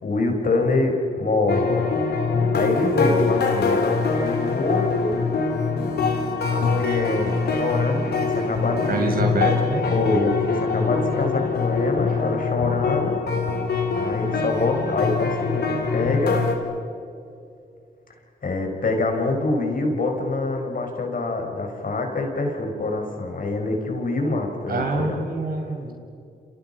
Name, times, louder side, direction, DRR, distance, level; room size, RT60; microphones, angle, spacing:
voice 1, 0.0-1.7 2.5-5.2 6.5-9.1 9.9-13.2 13.9-16.4 18.4-25.2, left 2 dB, 55° left, 3 dB, 5.3 m, -25 dB
sound 1, 1.5-16.6, left 4 dB, 70° left, 3.6 m, -23 dB
voice 2, 8.9-9.9 24.7-25.9, right 2 dB, 60° right, 2 dB, 5.5 m, -26 dB
29.5 x 27.5 x 5.7 m, 2.5 s
cardioid pair, 60°, 17 cm